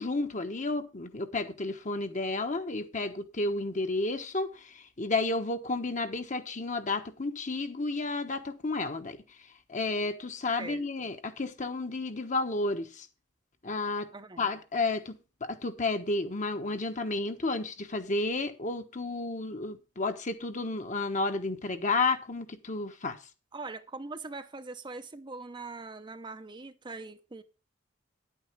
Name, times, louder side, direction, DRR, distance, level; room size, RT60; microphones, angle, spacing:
voice 1, 0.0-9.2 9.7-13.1 13.6-14.1 14.4-15.1 15.4-23.2, left 3 dB, 40° left, 1.3 m, -31 dB
voice 2, 10.6-11.1 14.1-14.5 23.5-27.4, right 3 dB, 25° right, 0.7 m, -42 dB
10.5 x 8.8 x 4.6 m
head